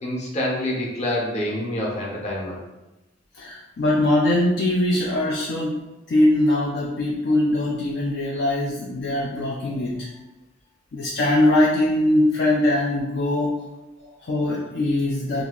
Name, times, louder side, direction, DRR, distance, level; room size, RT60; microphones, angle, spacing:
voice 1, 0.0-2.6 14.0-14.1, left 1 dB, 35° left, -3 dB, 0.9 m, -27 dB
voice 2, 3.3-5.8 6.1-10.1 10.9-13.5 14.2-15.4, left 1 dB, 60° left, -3 dB, 0.5 m, -21 dB
2.9 x 2.5 x 3.7 m, 1.0 s
head